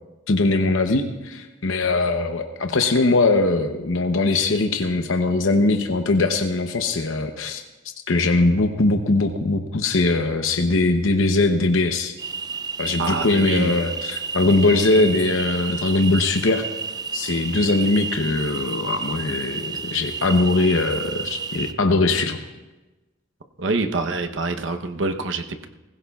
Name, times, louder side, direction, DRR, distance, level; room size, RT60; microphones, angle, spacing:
voice 1, 0.3-7.6 8.1-12.1 12.8-16.7 17.1-22.4, left 2 dB, 80° left, 5 dB, 0.8 m, -21 dB
sound 1, 12.2-21.7, right 5 dB, 20° right, 0.4 m, -31 dB
voice 2, 13.0-13.8 23.6-25.7, right 3 dB, 70° right, 6 dB, 0.9 m, -26 dB
20.0 x 16.0 x 2.4 m, 1.1 s
head